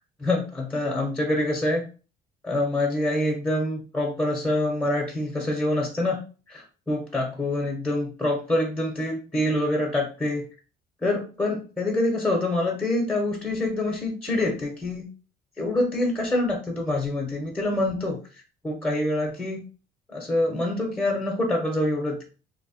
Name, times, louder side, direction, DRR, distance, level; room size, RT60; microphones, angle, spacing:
voice 1, 0.2-1.8 2.4-6.2 6.5-10.4 11.0-15.1 15.6-18.2 18.6-19.6 20.1-22.2, left 1 dB, 5° left, 1 dB, 0.8 m, -26 dB
2.8 x 2.1 x 4.0 m, 0.35 s
cardioid pair, 110°, 17 cm